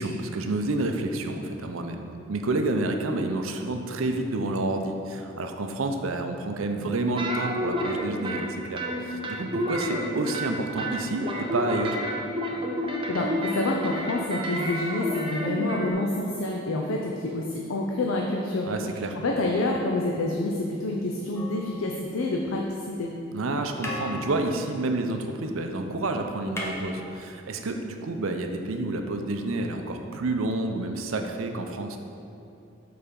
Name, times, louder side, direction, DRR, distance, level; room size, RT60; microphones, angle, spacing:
voice 1, 0.0-12.0 18.7-19.2 23.3-32.0, right 2 dB, 90° right, 5 dB, 0.6 m, -29 dB
sound 1, 7.2-8.4 8.8-10.5 10.8-15.9, equal, 25° right, 0.7 m, -30 dB
voice 2, 13.1-18.7 19.2-23.1, left 2 dB, 90° left, 0 dB, 0.6 m, -28 dB
sound 2, 21.3-22.5 23.4-23.5 23.8-25.7 25.9-26.0 26.3-27.7 28.8-28.9, left 1 dB, 15° left, 0.8 m, -38 dB
6.7 x 4.2 x 5.2 m, 2.7 s
head